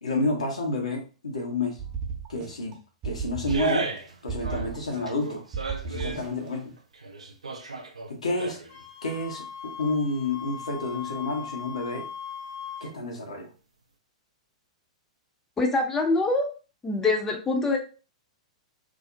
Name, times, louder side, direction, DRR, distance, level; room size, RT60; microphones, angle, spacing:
voice 1, 0.0-1.8 2.3-2.8 3.0-3.9 4.2-5.4 5.8-6.7 8.1-8.6 9.0-12.1 12.8-13.5, left 2 dB, 80° left, 1 dB, 0.7 m, -30 dB
sound 1, 1.8-2.7 3.0-4.0 4.3-5.2 5.5-6.5, right 5 dB, 30° right, 0.6 m, -34 dB
sound 2, 3.5-4.2 4.4-6.2 6.8-8.8 9.2-9.3, right 4 dB, 80° right, 0.3 m, -34 dB
Wind instrument woodwind instrument, 8.7-13.0, left 7 dB, 45° left, 0.7 m, -39 dB
voice 2, 15.6-16.5 16.8-17.8, left 3 dB, 15° left, 2 dB, 0.4 m, -24 dB
2.4 x 2.0 x 2.5 m, 0.35 s
figure-of-eight pair, 105°, 3 cm